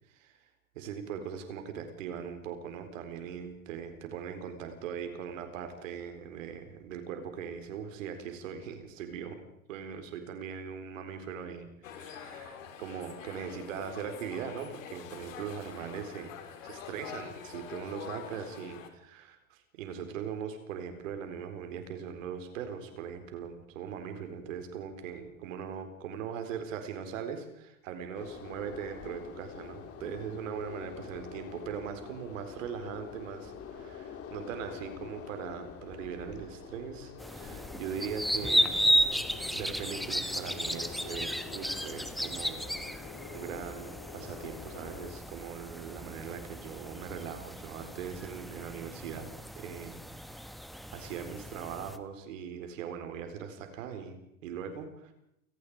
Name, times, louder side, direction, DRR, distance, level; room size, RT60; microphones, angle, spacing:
voice 1, 0.7-9.4 9.7-16.3 16.6-38.8 39.5-43.1 43.3-49.3 49.6-50.6 50.9-55.1, right 7 dB, 65° right, 7 dB, 4.4 m, -40 dB
sound 1, 11.8-18.9, left 8 dB, 70° left, 4.0 m, -45 dB
sound 2, 28.1-45.2, left 7 dB, 35° left, 3.6 m, -46 dB
sound 3, 37.2-52.0, equal, ahead, 1.3 m, -34 dB
29.5 x 18.5 x 5.0 m, 0.79 s
hypercardioid pair, 95°, 41 cm